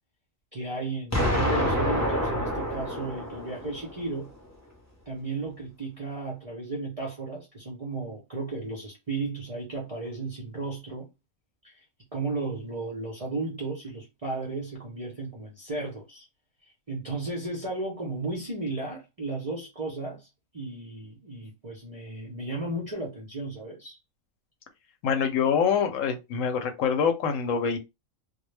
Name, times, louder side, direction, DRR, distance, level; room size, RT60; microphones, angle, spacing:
voice 1, 0.5-4.3 5.1-11.1 11.6-11.8 12.1-16.3 16.6-24.0, right 3 dB, 45° right, 0.4 m, -34 dB
Explosion, 1.1-4.1, equal, 20° left, 0.5 m, -27 dB
voice 2, 25.0-27.8, left 7 dB, 75° left, 0.9 m, -25 dB
2.1 x 2.1 x 3.1 m
omnidirectional pair, 1.4 m